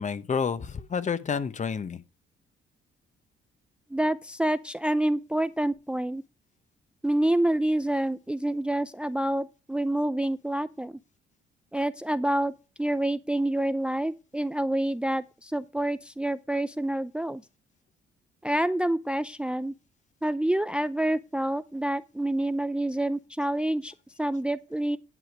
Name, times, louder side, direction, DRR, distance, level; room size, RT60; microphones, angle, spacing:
voice 1, 0.0-2.0, left 6 dB, 40° left, 0.9 m, -29 dB
voice 2, 3.9-6.2 7.0-11.0 11.7-12.5 12.8-17.4 18.4-19.7 20.2-25.0, right 1 dB, 5° right, 0.4 m, -27 dB
11.0 x 5.0 x 6.1 m
cardioid pair, 90°, 20 cm